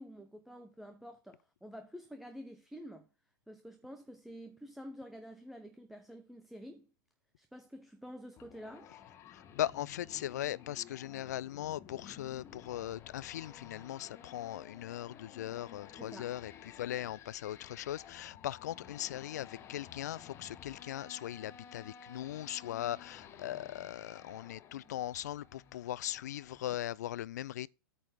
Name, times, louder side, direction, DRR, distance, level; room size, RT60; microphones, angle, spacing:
voice 1, 0.0-3.1 3.5-6.9 7.4-8.9 16.0-16.3, equal, ahead, 0.7 m, -49 dB
sound 1, 8.4-26.7, left 8 dB, 20° left, 1.0 m, -54 dB
voice 2, 9.3-16.5 16.8-27.7, left 12 dB, 50° left, 0.4 m, -39 dB
8.9 x 4.3 x 7.1 m
figure-of-eight pair, 110°, 12 cm